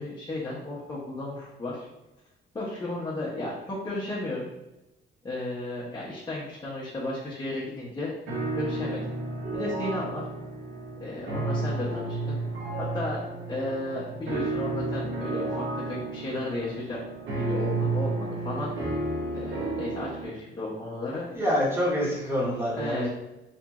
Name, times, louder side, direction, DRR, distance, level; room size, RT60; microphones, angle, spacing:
voice 1, 0.0-1.9 2.5-4.4 5.2-8.1 8.5-9.0 9.5-10.3 11.0-12.4 12.8-13.2 13.5-17.0 17.4-18.7 19.3-21.3 22.7-23.1, left 2 dB, 20° left, -8 dB, 0.7 m, -34 dB
sound 1, 8.3-20.3, right 2 dB, 75° right, 0.8 m, -32 dB
voice 2, 21.3-23.1, equal, 10° right, -6 dB, 1.2 m, -26 dB
2.9 x 2.5 x 2.3 m, 1.0 s
cardioid pair, 90°, 20 cm